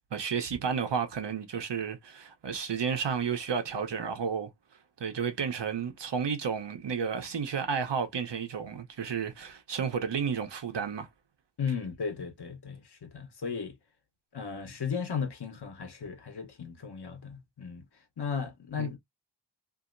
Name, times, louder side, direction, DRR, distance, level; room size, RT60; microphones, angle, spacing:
voice 1, 0.1-4.5 5.0-11.1 18.8-18.9, right 6 dB, 75° right, 1.0 m, -32 dB
voice 2, 11.6-13.8 14.3-17.8 18.2-19.0, left 6 dB, 65° left, 1.1 m, -35 dB
2.9 x 2.7 x 2.5 m
wide cardioid pair, 105°, 43 cm